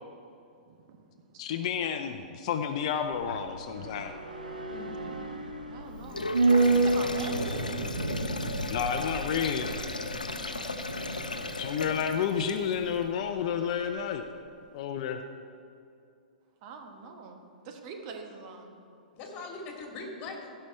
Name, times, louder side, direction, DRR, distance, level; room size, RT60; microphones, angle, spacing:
voice 1, 0.7-1.4 3.4-3.5 3.8-3.9 5.7-6.5 6.7-7.4 10.5-10.8 12.4-12.5 16.6-18.7, right 5 dB, 45° right, 3 dB, 1.2 m, -44 dB
voice 2, 1.4-4.1 8.7-9.7 11.6-14.2 14.7-15.2, left 8 dB, 50° left, 7 dB, 0.5 m, -30 dB
sound 1, 2.9-13.4 13.7-13.8, right 3 dB, 90° right, 1.1 m, -30 dB
voice 3, 4.7-5.2 19.1-20.5, left 3 dB, 35° left, 1 dB, 2.2 m, -41 dB
Sink (filling or washing), 6.0-12.9, left 2 dB, 85° left, 0.7 m, -37 dB
16.0 x 5.6 x 4.4 m, 2.5 s
figure-of-eight pair, 105°, 4 cm